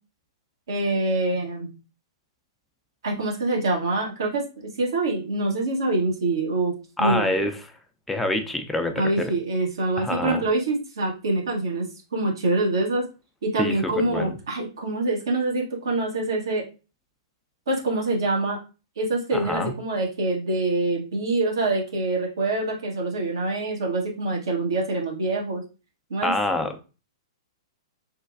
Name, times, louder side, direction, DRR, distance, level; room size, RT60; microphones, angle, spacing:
voice 1, 0.7-1.7 3.0-7.3 9.0-13.0 13.4-16.7 17.7-18.6 19.0-25.6 26.1-26.3, right 2 dB, 65° right, -1 dB, 0.9 m, -25 dB
voice 2, 7.0-7.5 8.1-9.3 10.0-10.4 13.6-14.3 19.3-19.7 26.2-26.8, left 1 dB, 5° left, 5 dB, 0.4 m, -26 dB
3.2 x 2.2 x 2.4 m, 0.32 s
figure-of-eight pair, 110°, 2 cm